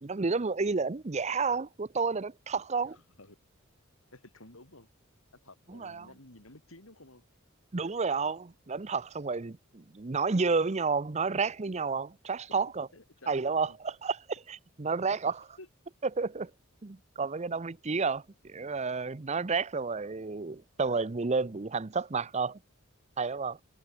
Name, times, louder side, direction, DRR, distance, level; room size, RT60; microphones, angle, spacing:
voice 1, 0.0-3.0 5.7-6.1 7.7-12.9 13.3-15.3 16.1-16.5 16.8-22.6 23.2-23.6, right 4 dB, 35° right, 0.6 m, -31 dB
voice 2, 2.8-3.3 4.1-4.9 5.4-7.3 12.9-13.8 15.6-15.7, left 2 dB, 85° left, 6.6 m, -53 dB
head